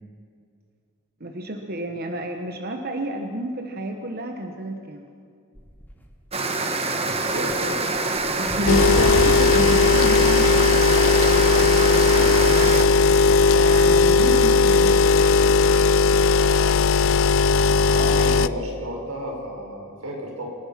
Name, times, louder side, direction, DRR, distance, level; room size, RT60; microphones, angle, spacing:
voice 1, 1.2-5.0 8.4-10.7 13.3-15.3, right 1 dB, 45° right, 4 dB, 1.3 m, -30 dB
sound 1, 5.5-6.3 7.1-9.6 9.9-10.4 11.5-12.7 13.5-13.6, right 1 dB, 10° left, 2.5 m, -36 dB
sound 2, 6.3-12.8, right 3 dB, 30° right, 1.5 m, -25 dB
voice 2, 7.0-7.9 12.0-12.4 17.8-20.5, equal, 90° right, 0 dB, 5.9 m, -33 dB
sound 3, 8.7-18.5, left 4 dB, 65° left, 0.6 m, -17 dB
27.5 x 18.0 x 5.9 m, 2.4 s
head